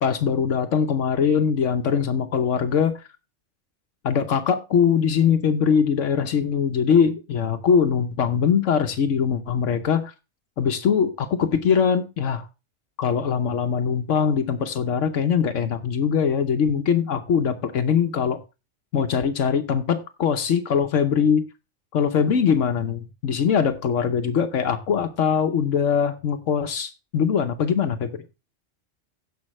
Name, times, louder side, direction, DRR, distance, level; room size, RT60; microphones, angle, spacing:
voice 1, 0.0-2.9 4.0-10.1 10.6-12.5 13.0-18.4 18.9-21.4 21.9-28.1, left 7 dB, 80° left, 1.2 m, -22 dB
16.0 x 5.6 x 3.1 m
omnidirectional pair, 1.3 m